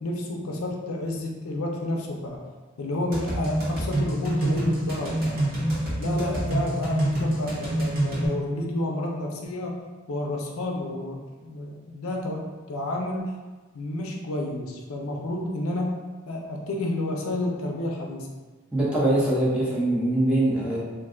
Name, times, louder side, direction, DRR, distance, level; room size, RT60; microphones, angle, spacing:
voice 1, 0.0-2.4 2.8-5.5 6.0-9.7 10.1-13.3 13.7-15.9 16.3-18.3, left 1 dB, 85° left, 0 dB, 0.5 m, -30 dB
sound 1, 3.1-8.3, right 1 dB, 45° right, 1.0 m, -26 dB
voice 2, 18.7-20.8, right 1 dB, 5° right, -8 dB, 0.8 m, -23 dB
2.5 x 2.3 x 3.7 m, 1.3 s
head